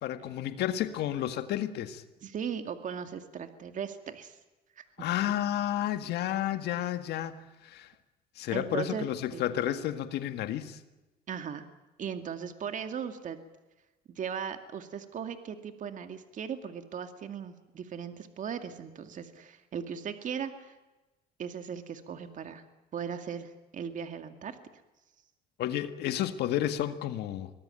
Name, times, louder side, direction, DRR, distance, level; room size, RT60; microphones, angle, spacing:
voice 1, 0.0-2.0 5.0-7.4 7.6-7.9 8.4-10.8 25.6-27.5, left 12 dB, 75° left, 9 dB, 1.8 m, -31 dB
voice 2, 2.2-4.4 4.8-5.1 8.5-9.1 9.3-9.5 11.3-11.7 12.0-13.4 14.2-20.7 21.4-22.6 22.9-24.6, right 7 dB, 50° right, 8 dB, 2.3 m, -38 dB
24.0 x 19.0 x 9.1 m, 1.1 s
cardioid pair, 110°, 17 cm